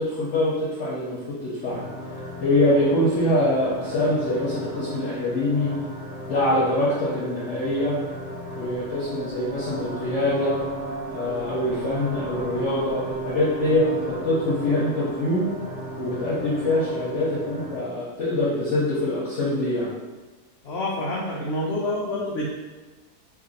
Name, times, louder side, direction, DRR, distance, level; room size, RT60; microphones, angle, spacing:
voice 1, 0.0-1.8 2.4-5.7 6.3-8.0 8.6-10.6 11.0-15.4 16.0-19.9, left 1 dB, 60° left, -8 dB, 0.9 m, -24 dB
sound 1, 1.7-17.8, equal, 50° right, 0.9 m, -35 dB
voice 2, 20.6-22.5, left 1 dB, 85° left, -4 dB, 0.5 m, -27 dB
2.8 x 2.6 x 3.8 m, 1.2 s
omnidirectional pair, 1.7 m